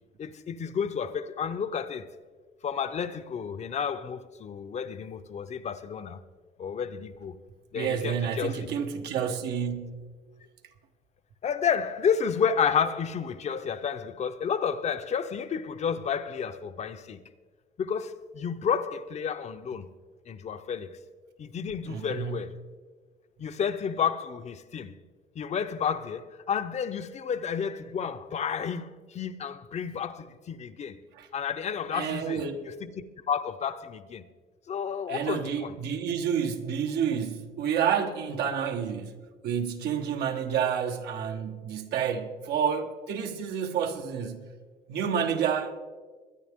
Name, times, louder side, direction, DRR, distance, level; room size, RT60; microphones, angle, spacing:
voice 1, 0.2-2.1 2.6-6.2 6.6-7.3 7.7-8.7 11.4-17.2 17.8-19.9 20.3-20.9 21.4-22.5 23.4-25.0 25.3-31.0 31.3-32.9 33.3-34.2 34.7-35.8, left 7 dB, 40° left, 0.8 m, -31 dB
voice 2, 7.7-10.0 21.9-22.4 31.1-31.3 31.9-32.6 35.1-39.2 39.4-44.5 44.9-45.7, right 7 dB, 75° right, 1.4 m, -29 dB
21.5 x 9.8 x 3.7 m
cardioid pair, 110°, 17 cm